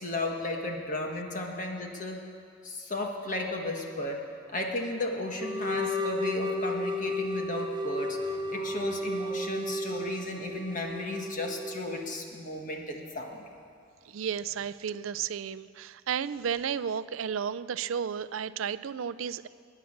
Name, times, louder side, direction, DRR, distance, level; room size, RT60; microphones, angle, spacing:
voice 1, 0.0-2.2 2.6-4.2 4.5-13.4, left 2 dB, 40° left, 1 dB, 1.5 m, -34 dB
sound 1, 5.4-12.2, left 1 dB, 20° right, 0.5 m, -33 dB
voice 2, 14.1-19.5, right 7 dB, 75° right, 16 dB, 0.4 m, -33 dB
21.5 x 9.3 x 6.6 m, 2.3 s
head